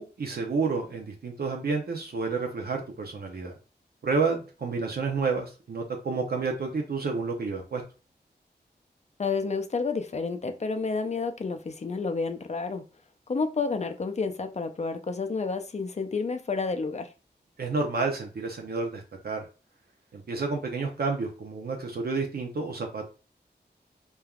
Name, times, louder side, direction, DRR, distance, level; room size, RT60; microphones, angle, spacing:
voice 1, 0.0-3.5 4.0-7.8 17.6-19.4 20.1-23.1, right 4 dB, 60° right, 0.6 m, -30 dB
voice 2, 9.2-12.8 13.3-17.1, left 4 dB, 40° left, 0.4 m, -30 dB
3.3 x 2.3 x 2.3 m
cardioid pair, 45°, 18 cm